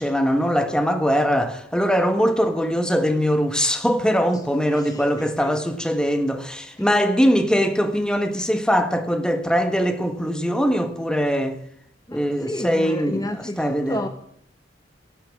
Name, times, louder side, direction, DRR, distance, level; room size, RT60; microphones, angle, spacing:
voice 1, 0.0-11.6 12.1-14.1, equal, 5° left, 1.3 m, -21 dB
voice 2, 4.7-5.5 6.8-6.9 12.1-14.1, left 1 dB, 20° left, 1.0 m, -32 dB
16.0 x 8.6 x 9.5 m
head